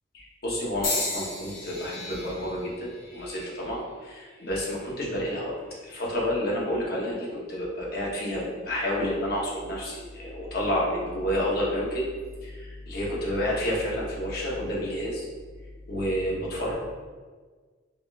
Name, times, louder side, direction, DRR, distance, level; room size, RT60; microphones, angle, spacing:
voice 1, 0.1-5.6 5.8-12.1 12.4-15.2 15.9-16.7, equal, 55° left, -4 dB, 0.9 m, -30 dB
sound 1, 0.8-5.0 5.7-6.1 7.1-7.3, left 2 dB, 85° left, 1.0 m, -36 dB
4.9 x 2.3 x 2.4 m, 1.5 s
head